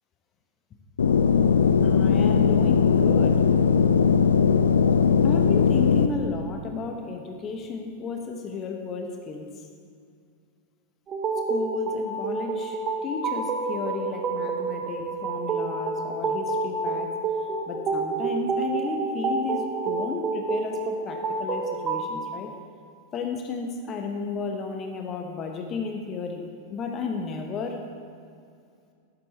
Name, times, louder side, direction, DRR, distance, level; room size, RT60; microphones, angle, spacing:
sound 1, 1.0-6.1, left 6 dB, 70° left, 0.5 m, -19 dB
voice 1, 1.8-3.5 5.2-9.5 11.5-17.1 17.7-22.5 23.1-27.8, left 5 dB, 30° left, 3 dB, 1.2 m, -33 dB
sound 2, 11.1-22.1, right 4 dB, 30° right, 1.5 m, -29 dB
13.5 x 10.5 x 4.3 m, 2.3 s
figure-of-eight pair, 90°, 0 cm